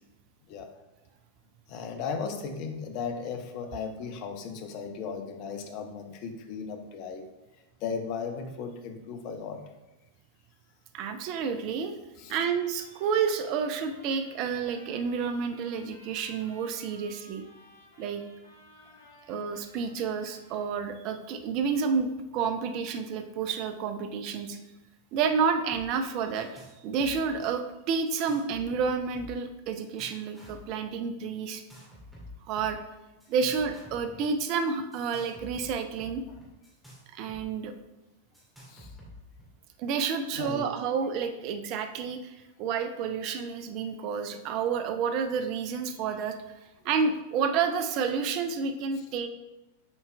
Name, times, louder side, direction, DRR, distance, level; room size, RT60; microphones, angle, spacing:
voice 1, 1.7-7.3 7.8-9.6 12.2-12.4 18.8-19.0 38.7-38.9 40.3-40.7, left 5 dB, 45° left, 6 dB, 0.7 m, -36 dB
voice 2, 10.9-12.0 12.3-17.4 18.0-18.2 19.3-24.6 25.1-31.6 32.5-32.8 33.3-36.2 37.1-37.7 39.8-46.4 46.8-49.3, right 6 dB, 40° right, 8 dB, 0.5 m, -30 dB
Trumpet, 12.3-20.9, left 1 dB, 90° right, 1.4 m, -56 dB
sound 1, 25.7-25.9 26.1-26.7 27.0-27.5 28.1-29.5 29.8-30.7 31.5-32.7 33.2-34.3 34.9-37.4 37.7-37.8 38.3-39.4, left 1 dB, 5° right, 2.3 m, -49 dB
7.2 x 4.4 x 3.3 m, 0.99 s
figure-of-eight pair, 90°, 0 cm